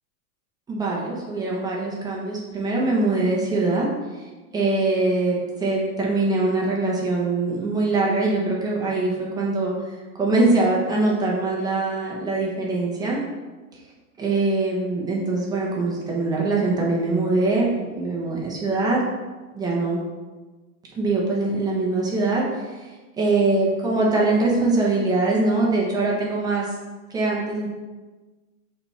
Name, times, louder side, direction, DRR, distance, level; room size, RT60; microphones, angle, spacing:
voice 1, 0.7-4.2 4.5-13.2 13.7-13.8 14.2-19.0 19.5-20.0 20.9-26.7 27.1-27.7, right 2 dB, 10° right, -3 dB, 0.9 m, -23 dB
5.2 x 4.3 x 5.6 m, 1.3 s
supercardioid pair, 170°, 39 cm